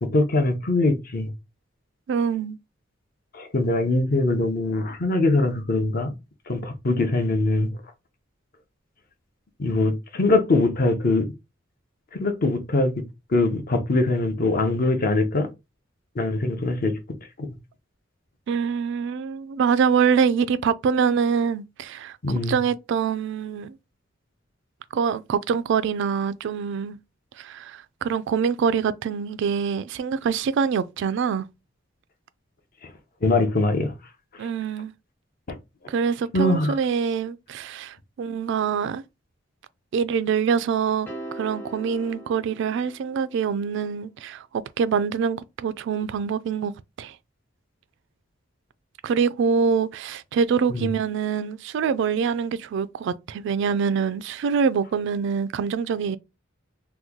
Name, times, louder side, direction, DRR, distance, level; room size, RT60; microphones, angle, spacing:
voice 1, 0.0-1.3 3.3-6.1 6.5-7.7 9.6-11.3 12.1-13.0 13.3-15.5 16.2-16.9 17.4-17.5 22.2-22.6 32.8-32.9 33.2-33.9 34.4-34.5 36.3-36.8 50.7-50.9, left 2 dB, 50° left, 0.7 m, -22 dB
voice 2, 2.1-2.6 18.5-22.2 22.5-23.7 24.9-27.0 27.4-31.5 34.4-34.9 35.9-39.0 39.9-41.1 41.3-46.7 47.0-47.1 49.0-56.2, right 6 dB, 65° right, 0.3 m, -25 dB
sound 1, 41.1-43.5, right 2 dB, 10° left, 0.6 m, -40 dB
3.0 x 2.2 x 3.6 m
head